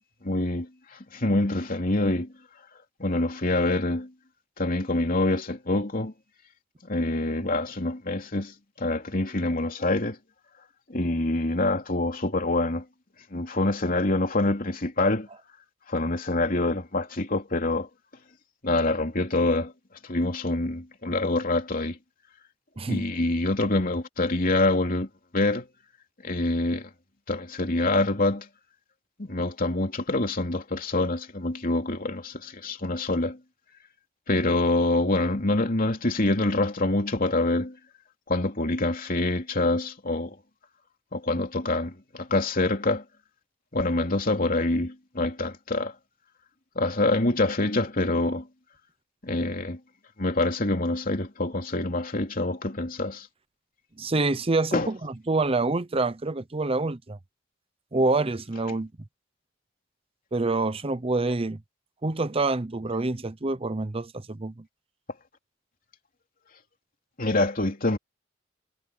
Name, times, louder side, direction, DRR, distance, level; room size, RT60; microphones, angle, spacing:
voice 1, 0.2-0.7 1.1-2.3 3.0-4.1 4.6-6.1 6.8-10.2 10.9-12.8 13.3-15.3 15.9-17.9 18.6-19.7 20.0-22.0 22.9-25.1 25.3-25.7 26.2-26.9 27.3-28.5 29.2-33.4 34.3-37.8 38.3-40.4 41.1-43.0 43.7-45.9 46.7-48.5 49.2-49.8 50.2-53.3 54.7-54.9 67.2-68.0, left 2 dB, 50° left, 3.2 m, -26 dB
voice 2, 54.0-57.2 57.9-58.9 60.3-61.6 62.0-64.6, right 3 dB, 30° right, 0.8 m, -26 dB
head